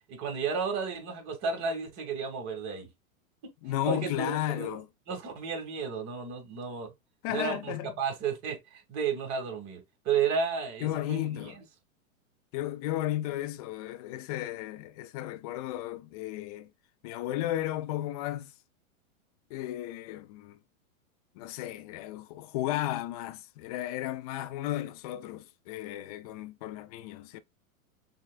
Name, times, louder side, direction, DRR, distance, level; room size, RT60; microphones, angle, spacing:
voice 1, 0.1-2.9 3.9-4.8 5.1-6.9 7.3-11.5, right 6 dB, 40° right, 1.8 m, -32 dB
voice 2, 3.6-4.9 7.2-7.9 10.8-11.6 12.5-16.7 17.0-18.5 19.5-20.6 21.4-27.4, left 14 dB, 30° left, 0.3 m, -34 dB
6.2 x 2.4 x 2.3 m
hypercardioid pair, 115°, 42 cm